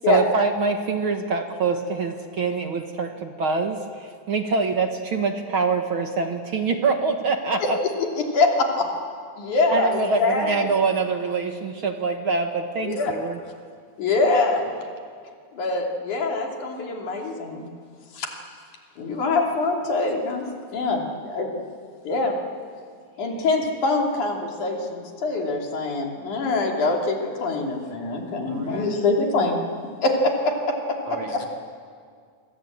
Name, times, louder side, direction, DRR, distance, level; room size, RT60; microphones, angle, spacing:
voice 1, 0.1-7.8 9.7-13.4, right 4 dB, 50° right, 5 dB, 1.8 m, -24 dB
voice 2, 8.3-8.9 9.4-10.7 12.8-13.1 14.0-14.7 15.5-17.7 18.1-18.3 19.0-20.5 20.7-21.5 22.0-22.4 23.2-29.6 30.0-31.5, left 3 dB, 75° left, 1 dB, 4.5 m, -24 dB
voice 3, 28.4-28.8 31.1-31.5, right 4 dB, 75° right, 2 dB, 4.0 m, -39 dB
27.0 x 23.5 x 8.8 m, 2.1 s
omnidirectional pair, 3.5 m